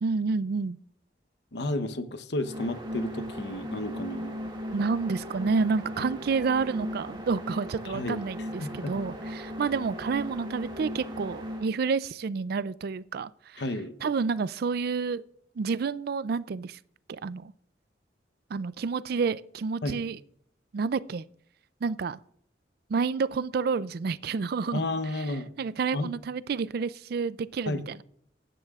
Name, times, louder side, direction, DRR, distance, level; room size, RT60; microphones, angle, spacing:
voice 1, 0.0-0.8 4.7-13.6 14.0-15.2 15.6-16.8 17.1-17.5 18.5-20.2 20.7-21.2 21.8-22.2 22.9-24.8 25.1-25.2 25.6-28.0, right 5 dB, 55° right, 0.4 m, -29 dB
voice 2, 1.5-4.4 7.9-8.2 8.6-8.9 13.6-13.9 19.8-20.0 24.7-25.5 25.9-26.2 27.7-27.9, left 2 dB, 65° left, 0.9 m, -32 dB
sound 1, 2.4-11.7, equal, 25° right, 2.1 m, -37 dB
15.5 x 10.5 x 2.4 m
head